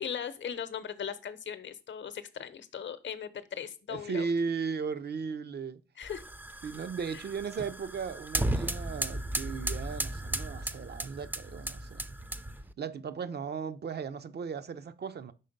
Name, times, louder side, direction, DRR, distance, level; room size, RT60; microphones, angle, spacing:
voice 1, 0.0-4.3 6.0-6.2 7.1-7.2, left 8 dB, 70° left, 0.8 m, -38 dB
voice 2, 3.9-5.8 6.6-12.0 12.8-15.3, right 5 dB, 55° right, 0.6 m, -36 dB
sound 1, 6.0-12.7, right 1 dB, 10° right, 0.4 m, -35 dB
5.5 x 3.5 x 5.2 m
cardioid pair, 60°, 20 cm